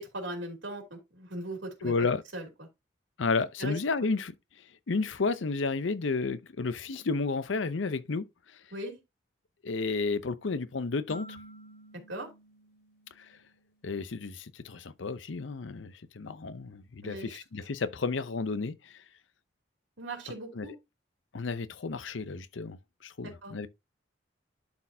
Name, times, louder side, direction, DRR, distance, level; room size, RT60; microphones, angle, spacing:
voice 1, 0.0-1.9 2.3-2.5 3.6-3.8 8.7-9.0 12.1-12.3 17.0-17.4 20.0-20.7 23.2-23.5, right 1 dB, 75° right, 2.8 m, -39 dB
voice 2, 1.8-2.2 3.2-4.3 4.9-8.3 9.6-11.4 13.8-18.9 20.5-20.7 21.3-22.8 23.0-23.7, left 4 dB, 80° left, 0.6 m, -32 dB
sound 1, 11.1-13.7, right 1 dB, 50° left, 5.3 m, -50 dB
11.5 x 4.2 x 2.7 m
head